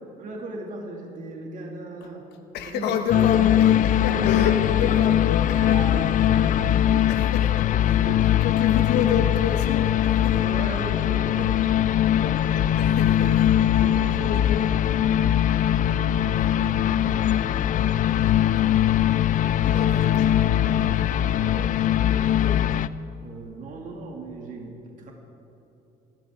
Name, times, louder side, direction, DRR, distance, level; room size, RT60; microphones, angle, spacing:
voice 1, 0.2-2.2 2.7-3.3 3.7-5.1 5.6-6.6 7.0-7.2 7.9-8.3 10.3-11.8 13.8-15.5 16.1-17.3 21.4-21.8 23.2-25.1, right 2 dB, 50° right, 0 dB, 2.4 m, -37 dB
voice 2, 2.5-5.9 7.1-10.4 12.8-13.4 14.2-14.7 16.6-16.7 19.6-21.0 22.4-22.6, left 7 dB, 80° left, 5 dB, 1.1 m, -30 dB
sound 1, 3.1-22.9, left 11 dB, 50° left, 0.4 m, -21 dB
28.5 x 13.5 x 3.7 m, 2.9 s
cardioid pair, 110°, 17 cm